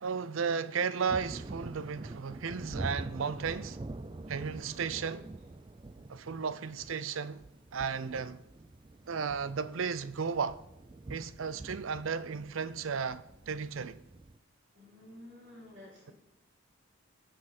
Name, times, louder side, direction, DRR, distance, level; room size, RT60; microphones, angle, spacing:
voice 1, 0.0-3.8 4.3-5.2 6.1-7.4 7.7-8.4 9.1-10.6 11.1-14.0, right 6 dB, 75° right, 0.5 m, -34 dB
Thunder, 1.1-14.4, right 2 dB, 25° right, 0.4 m, -45 dB
voice 2, 4.5-5.3 14.7-16.1, left 1 dB, 60° right, 3.6 m, -52 dB
18.5 x 6.5 x 4.2 m
head